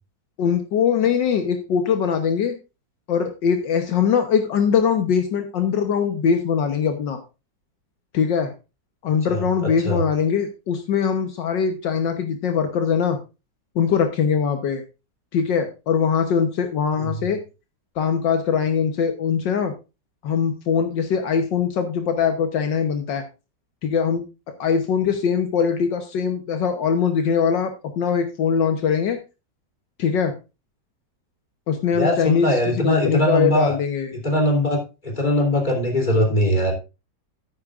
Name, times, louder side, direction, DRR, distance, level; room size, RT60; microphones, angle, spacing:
voice 1, 0.4-2.6 3.1-7.2 8.1-8.5 9.0-13.2 13.8-14.8 15.3-17.4 18.0-19.7 20.2-23.2 23.8-24.2 24.6-29.2 30.0-30.3 31.7-34.1, left 7 dB, 75° left, 6 dB, 1.7 m, -22 dB
voice 2, 9.3-10.0 17.0-17.3 31.9-33.7 34.2-36.7, equal, 25° left, 1 dB, 3.4 m, -21 dB
13.0 x 9.9 x 2.5 m, 0.28 s
omnidirectional pair, 2.0 m